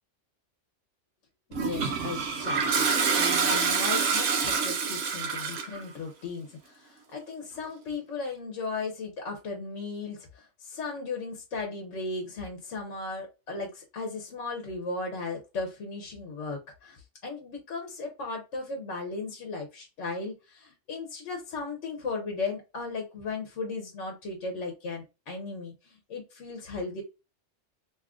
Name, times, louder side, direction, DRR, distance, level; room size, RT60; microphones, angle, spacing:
voice 1, 1.5-27.0, left 3 dB, 75° left, 1 dB, 1.0 m, -36 dB
Toilet flush, 1.5-5.8, right 5 dB, 85° right, 1.0 m, -26 dB
2.9 x 2.4 x 3.5 m, 0.29 s
omnidirectional pair, 1.3 m